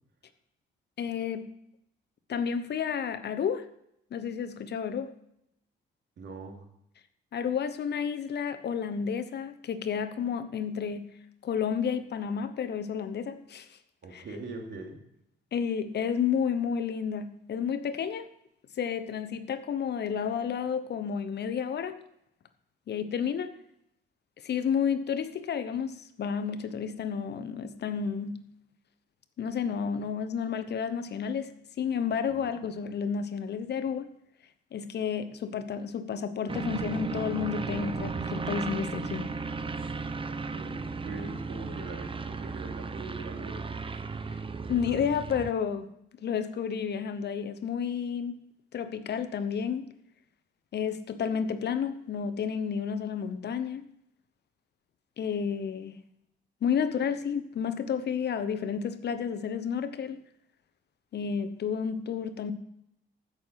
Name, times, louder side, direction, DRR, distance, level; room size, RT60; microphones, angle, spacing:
voice 1, 1.0-1.5 2.3-3.7 4.1-5.1 7.3-11.1 11.4-13.8 14.1-14.2 15.5-18.3 18.8-22.0 22.9-23.5 24.4-28.4 29.4-34.1 34.7-39.3 44.7-45.9 46.2-48.4 48.7-49.9 50.7-53.8 55.2-55.9 56.6-60.2 61.1-62.5, left 7 dB, 55° left, 11 dB, 1.0 m, -31 dB
voice 2, 6.2-6.6 14.0-15.0 32.3-32.4 40.3-43.8, right 3 dB, 65° right, 2 dB, 2.9 m, -42 dB
sound 1, 36.5-45.5, right 4 dB, 25° right, 0.9 m, -35 dB
15.0 x 6.5 x 5.8 m, 0.78 s
cardioid pair, 90°, 20 cm